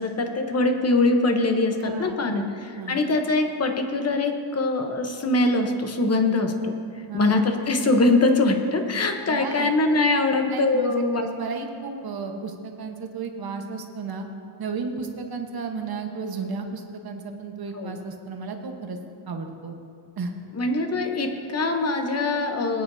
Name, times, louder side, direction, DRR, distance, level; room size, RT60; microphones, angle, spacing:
voice 1, 0.0-2.4 2.9-6.8 7.1-11.2 17.7-18.0 20.6-22.8, left 2 dB, 30° left, 5 dB, 1.0 m, -22 dB
voice 2, 1.8-2.5 2.8-3.0 7.1-7.4 9.3-10.1 10.5-14.3 14.6-19.0 19.3-19.8 20.2-20.3, right 4 dB, 50° right, 4 dB, 1.2 m, -33 dB
19.5 x 9.7 x 2.7 m, 2.4 s
cardioid pair, 130°, 48 cm